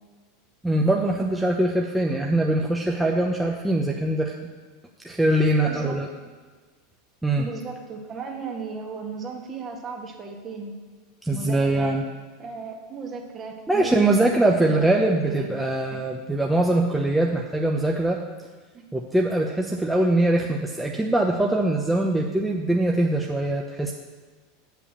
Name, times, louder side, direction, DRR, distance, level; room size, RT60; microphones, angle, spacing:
voice 1, 0.6-4.3 5.0-6.1 7.2-7.5 11.2-12.0 13.7-18.2 18.9-23.9, right 1 dB, 5° right, 0 dB, 0.8 m, -22 dB
voice 2, 5.6-6.0 7.4-10.7 11.3-11.9 12.4-16.0 18.7-18.8, right 4 dB, 30° right, 1 dB, 1.8 m, -36 dB
8.1 x 5.8 x 7.3 m, 1.4 s
figure-of-eight pair, 80°, 0 cm